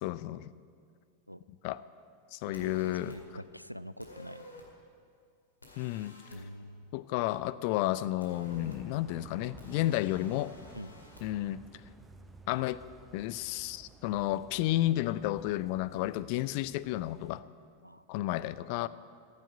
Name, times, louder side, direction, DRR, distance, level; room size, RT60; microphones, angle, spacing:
voice 1, 0.0-0.5 1.6-1.8 2.3-3.1 5.8-6.1 6.9-10.5 11.2-11.6 12.5-12.8 13.1-17.4 18.1-18.9, left 15 dB, 45° left, 18 dB, 0.4 m, -32 dB
sound 1, 2.5-3.2 4.0-4.7 5.6-6.4 8.2-8.8 9.6-11.2, left 1 dB, 80° left, 2.1 m, -51 dB
voice 2, 2.5-4.4 6.3-6.9 10.7-11.0 17.8-18.0, equal, 90° right, 16 dB, 0.3 m, -45 dB
sound 2, 8.4-17.4, right 3 dB, 10° right, 0.8 m, -54 dB
14.5 x 7.5 x 9.8 m, 2.2 s
figure-of-eight pair, 90°, 0 cm